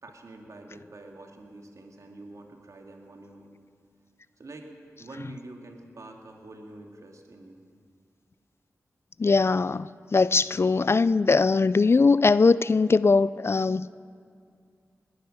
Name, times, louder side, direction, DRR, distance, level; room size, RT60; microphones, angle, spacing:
voice 1, 0.0-3.6 4.4-7.6, right 2 dB, 60° right, 2.1 m, -46 dB
voice 2, 9.2-13.9, left 4 dB, 45° left, 0.3 m, -21 dB
20.0 x 10.5 x 6.5 m
cardioid pair, 40°, 6 cm